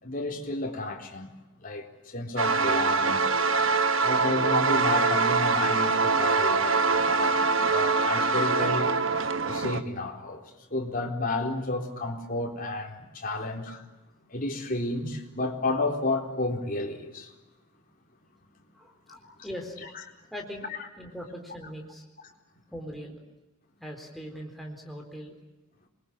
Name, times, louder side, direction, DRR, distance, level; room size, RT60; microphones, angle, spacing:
voice 1, 0.0-1.3 1.6-1.9 2.1-3.3 4.0-7.4 7.7-8.9 9.4-13.8 14.3-17.3 19.1-19.3, left 2 dB, 40° left, 4.1 m, -31 dB
sound 1, 2.4-9.8, right 4 dB, 65° right, 1.2 m, -24 dB
voice 2, 18.7-19.8 20.3-20.7 21.0-22.0 22.7-23.2 23.8-25.3, equal, ahead, 4.0 m, -40 dB
27.5 x 22.5 x 8.7 m
head